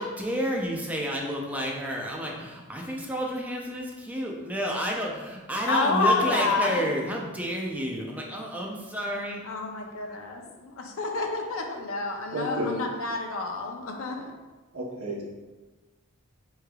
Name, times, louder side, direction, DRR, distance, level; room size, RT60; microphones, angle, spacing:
voice 1, 0.0-9.4, equal, 5° right, -1 dB, 0.5 m, -30 dB
voice 2, 5.7-6.8 9.4-14.3, left 3 dB, 70° left, 3 dB, 0.5 m, -28 dB
voice 3, 12.3-12.8 14.7-15.2, equal, 75° right, -2 dB, 0.8 m, -31 dB
4.6 x 3.3 x 2.3 m, 1.2 s
head